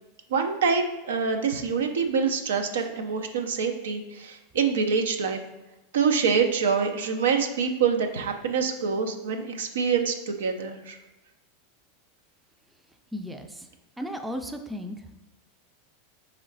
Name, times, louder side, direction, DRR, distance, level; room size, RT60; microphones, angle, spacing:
voice 1, 0.3-5.4 5.9-11.0, right 6 dB, 75° right, 5 dB, 0.5 m, -25 dB
voice 2, 13.1-13.7 14.0-14.9, equal, 5° right, 5 dB, 0.4 m, -34 dB
3.8 x 3.1 x 4.0 m, 1.0 s
hypercardioid pair, 95°, 0 cm